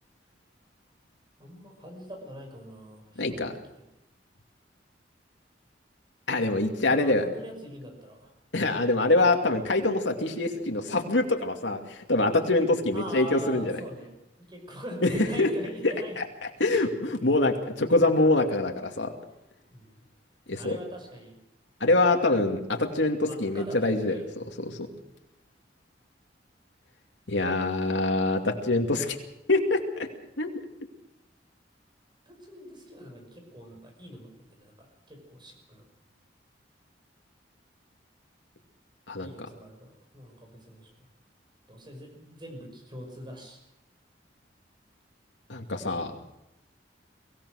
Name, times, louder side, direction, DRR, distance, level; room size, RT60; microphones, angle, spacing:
voice 1, 1.4-3.6 6.9-8.3 12.9-14.1 14.5-16.1 16.7-16.8 19.7-20.0 20.5-21.4 23.2-24.2 32.3-35.8 39.2-40.9 41.7-43.6, equal, 25° right, 3 dB, 6.1 m, -42 dB
voice 2, 3.2-3.5 6.3-7.2 8.5-13.8 15.0-15.1 15.4-15.5 15.8-16.2 16.6-19.1 20.5-20.7 21.8-24.8 27.3-29.2 29.5-30.1 30.4-30.6 39.1-39.3 45.5-46.3, left 2 dB, 90° left, 3 dB, 2.5 m, -25 dB
23.5 x 17.0 x 6.5 m, 0.88 s
head